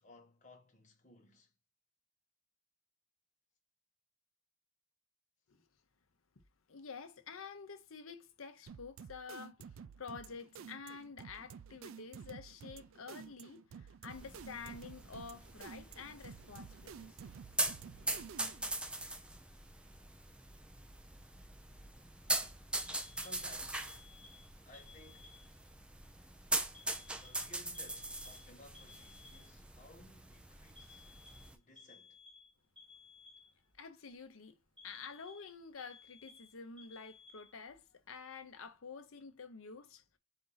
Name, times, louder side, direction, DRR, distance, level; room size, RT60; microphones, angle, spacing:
voice 1, 0.0-1.5 22.3-23.9 24.6-25.4 27.1-31.1 31.5-32.2, left 1 dB, 40° left, 1.3 m, -59 dB
voice 2, 6.7-9.7 10.0-17.2 33.8-34.6 34.8-40.0, left 5 dB, 90° left, 0.8 m, -49 dB
sound 1, 8.7-18.8, right 6 dB, 80° right, 0.4 m, -52 dB
sound 2, 14.1-31.6, right 2 dB, 5° right, 0.4 m, -42 dB
Alarm, 22.7-25.7 26.7-29.7 30.8-33.7 34.8-37.7, left 5 dB, 25° right, 1.5 m, -58 dB
4.4 x 2.6 x 3.8 m
head